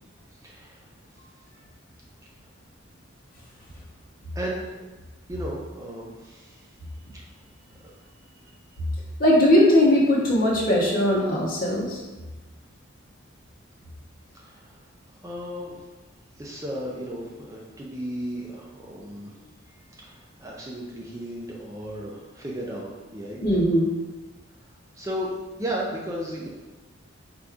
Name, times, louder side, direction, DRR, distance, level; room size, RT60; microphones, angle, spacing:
voice 1, 0.4-0.9 4.3-4.7 5.3-6.7 7.1-7.4 7.8-7.9 14.3-14.8 15.1-15.9 16.3-19.3 20.0-23.4 24.9-25.3 25.6-26.5, equal, 15° right, -3 dB, 0.4 m, -35 dB
voice 2, 9.2-12.0 23.4-23.9, left 1 dB, 45° left, -4 dB, 0.9 m, -19 dB
4.5 x 2.6 x 3.5 m, 1.2 s
head